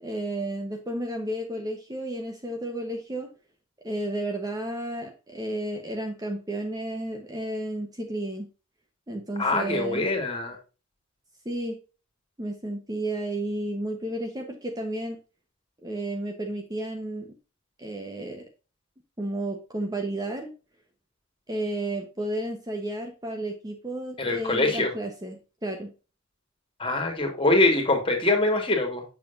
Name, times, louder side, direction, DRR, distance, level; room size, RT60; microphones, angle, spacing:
voice 1, 0.0-3.3 3.8-8.5 9.1-10.1 11.4-11.8 12.4-15.2 15.8-17.3 17.8-18.4 19.2-20.5 21.5-25.9, right 1 dB, 20° right, 3 dB, 1.1 m, -32 dB
voice 2, 9.4-10.6 24.2-24.9 26.8-29.0, left 2 dB, 25° left, 4 dB, 2.5 m, -23 dB
8.2 x 6.8 x 2.6 m, 0.32 s
head